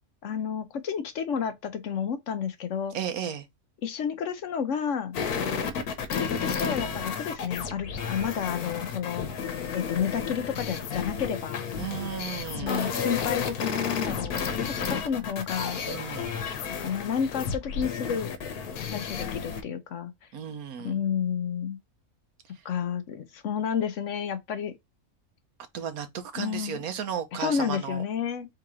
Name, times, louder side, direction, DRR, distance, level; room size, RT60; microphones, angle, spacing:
voice 1, 0.2-3.0 3.8-5.2 6.1-9.3 9.7-11.6 12.6-15.8 16.8-18.3 18.9-20.1 20.8-21.8 22.6-24.7 26.4-26.8 27.4-28.5, left 7 dB, 65° left, 0.9 m, -31 dB
voice 2, 2.9-3.5 11.8-12.9 15.9-16.3 20.3-21.0 25.7-28.0, right 8 dB, 75° right, 1.3 m, -34 dB
sound 1, 5.1-19.6, left 6 dB, 90° left, 1.3 m, -32 dB
3.8 x 2.8 x 4.8 m
omnidirectional pair, 1.6 m